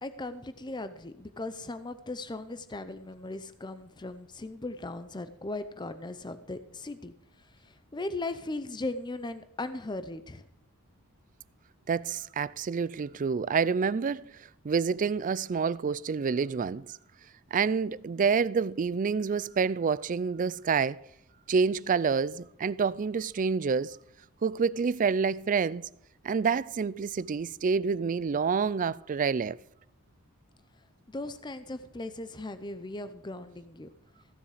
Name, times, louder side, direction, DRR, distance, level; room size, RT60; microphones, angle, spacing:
voice 1, 0.0-7.1 7.6-10.4 31.1-33.9, left 2 dB, 20° left, 0.6 m, -38 dB
voice 2, 11.9-14.3 14.6-16.9 17.5-21.0 21.5-24.0 24.4-25.9 26.2-29.6, right 5 dB, 35° right, 0.3 m, -28 dB
15.0 x 7.0 x 4.9 m
head